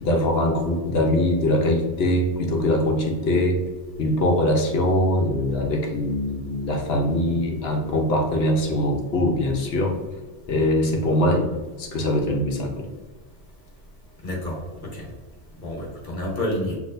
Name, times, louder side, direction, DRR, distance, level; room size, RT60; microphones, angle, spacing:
voice 1, 0.0-3.6 4.0-9.9 10.5-11.4 11.8-12.9, left 1 dB, 70° left, 1 dB, 1.0 m, -22 dB
voice 2, 14.2-15.0 15.6-16.8, left 1 dB, 50° left, -2 dB, 1.3 m, -29 dB
6.4 x 2.9 x 2.6 m, 1.3 s
omnidirectional pair, 1.1 m